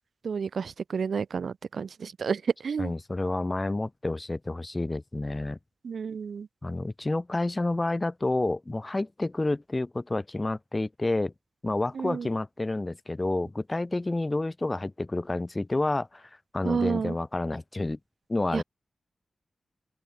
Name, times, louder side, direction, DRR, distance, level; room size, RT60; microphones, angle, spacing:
voice 1, 0.2-2.9 5.8-6.5 12.0-12.3 16.6-17.1 18.5-18.6, right 6 dB, 85° right, 0.4 m, -30 dB
voice 2, 2.8-5.6 6.6-11.3 11.6-18.0 18.3-18.6, left 2 dB, 25° left, 0.9 m, -29 dB
open air
cardioid pair, 70°, 0 cm